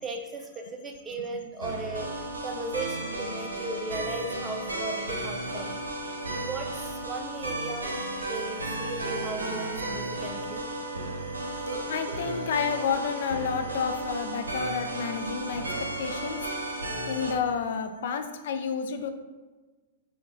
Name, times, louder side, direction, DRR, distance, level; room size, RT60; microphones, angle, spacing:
voice 1, 0.0-5.7 6.4-7.9 8.2-10.6, right 3 dB, 20° right, 2 dB, 0.5 m, -36 dB
sound 1, 1.6-17.3, right 1 dB, 80° right, 0.7 m, -34 dB
voice 2, 11.9-16.4 17.1-19.1, left 6 dB, 60° left, 7 dB, 0.4 m, -30 dB
4.6 x 2.2 x 3.9 m, 1.3 s
figure-of-eight pair, 105°, 0 cm